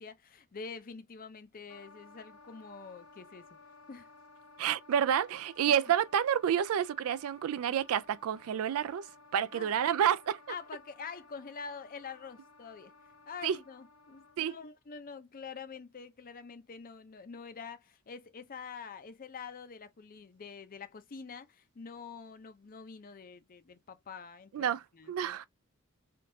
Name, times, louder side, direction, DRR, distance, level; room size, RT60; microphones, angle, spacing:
voice 1, 0.0-3.5 3.9-4.1 5.6-5.7 9.5-9.7 10.5-12.9 13.3-25.5, left 5 dB, 40° left, 0.5 m, -46 dB
Wind instrument woodwind instrument, 1.7-14.6, left 3 dB, 85° left, 0.8 m, -57 dB
voice 2, 4.6-9.1 9.3-10.4 13.4-13.6 14.4-14.5 24.5-24.8 25.1-25.5, right 9 dB, 70° right, 0.3 m, -29 dB
3.6 x 2.4 x 2.6 m
head